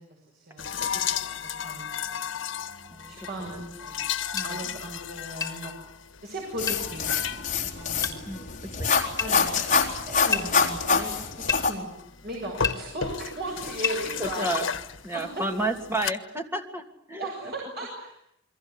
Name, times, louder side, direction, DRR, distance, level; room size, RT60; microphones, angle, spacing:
voice 1, 0.0-2.3 3.1-4.0 4.4-5.7 6.2-7.1 7.7-8.2 8.6-8.7 9.2-11.9 12.2-14.6 15.1-15.7 17.2-18.2, right 1 dB, 55° right, -1 dB, 7.9 m, -37 dB
sound 1, 0.6-16.1, left 7 dB, 80° left, 1.6 m, -35 dB
voice 2, 4.3-4.7 8.3-8.9 14.2-14.7 15.0-17.3, right 2 dB, 15° right, 5 dB, 2.9 m, -32 dB
sound 2, 4.4-4.5 5.4-5.6 6.7-6.8 8.0-8.2 9.2-9.3 10.3-10.5 11.5-11.7 12.6-12.8 13.8-14.0, left 7 dB, 20° left, 3.6 m, -28 dB
sound 3, 6.6-11.7, left 5 dB, 40° left, 4.0 m, -25 dB
29.0 x 23.0 x 8.2 m, 0.76 s
head